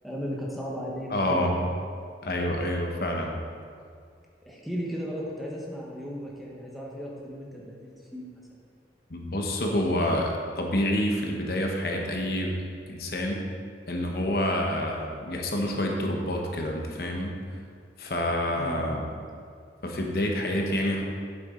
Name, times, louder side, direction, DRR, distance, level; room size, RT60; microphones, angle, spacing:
voice 1, 0.0-1.6 4.4-8.4 18.5-18.9, equal, ahead, -4 dB, 1.1 m, -36 dB
voice 2, 1.1-1.7 2.2-3.3 9.1-12.5 12.9-13.4 13.9-17.3 18.0-19.1 19.8-21.0, left 1 dB, 55° left, 0 dB, 1.0 m, -28 dB
8.8 x 7.9 x 3.8 m, 2.2 s
head